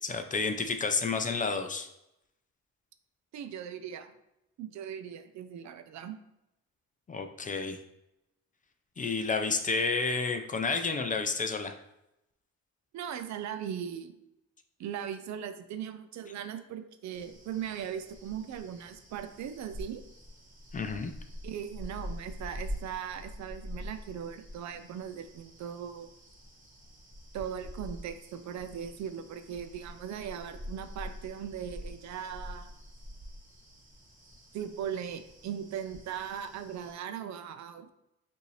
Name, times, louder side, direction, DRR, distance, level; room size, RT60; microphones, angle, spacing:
voice 1, 0.0-1.9 7.1-7.8 9.0-11.7 20.7-21.1, left 4 dB, 25° left, 6 dB, 0.4 m, -30 dB
voice 2, 3.3-4.1 4.6-6.2 12.9-14.2 14.8-20.0 21.4-26.1 27.3-32.7 34.5-37.9, right 8 dB, 65° right, 9 dB, 0.5 m, -39 dB
sound 1, 17.1-36.9, equal, 25° right, 1.6 m, -46 dB
5.2 x 2.7 x 3.1 m, 0.85 s
cardioid pair, 90°, 30 cm